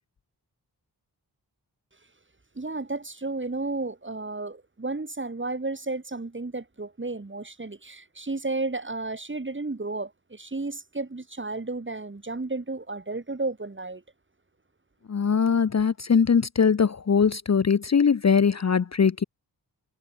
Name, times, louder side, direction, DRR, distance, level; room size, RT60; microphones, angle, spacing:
voice 1, 2.6-14.0, right 3 dB, 30° right, 3.7 m, -33 dB
voice 2, 15.1-19.2, left 6 dB, 40° left, 0.8 m, -21 dB
wide cardioid pair, 120°, 40 cm